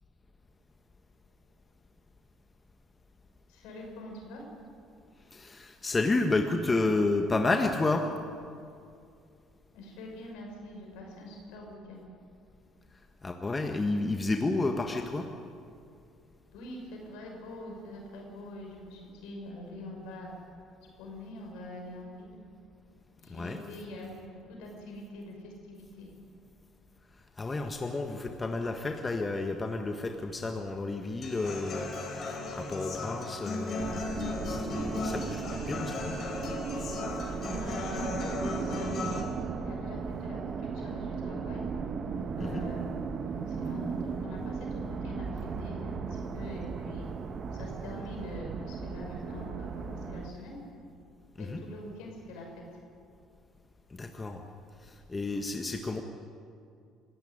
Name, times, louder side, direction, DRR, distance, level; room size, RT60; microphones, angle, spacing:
voice 1, 3.5-4.4 9.7-12.0 16.5-20.3 21.0-22.4 23.2-26.1 37.4-39.2 39.6-41.6 42.4-42.9 43.5-47.1 47.5-50.6 51.4-52.8, left 1 dB, 70° left, 0 dB, 6.2 m, -44 dB
voice 2, 5.3-8.1 13.2-15.3 23.3-23.6 27.4-36.1 42.4-42.7 51.4-51.6 53.9-54.4 54.8-56.0, left 3 dB, 25° left, 4 dB, 1.7 m, -31 dB
Human voice / Acoustic guitar, 31.2-39.2, left 3 dB, 50° left, 5.0 m, -36 dB
sound 1, 33.8-50.3, right 5 dB, 45° right, 1.6 m, -36 dB
25.5 x 13.5 x 9.8 m, 2.5 s
hypercardioid pair, 55°, 0 cm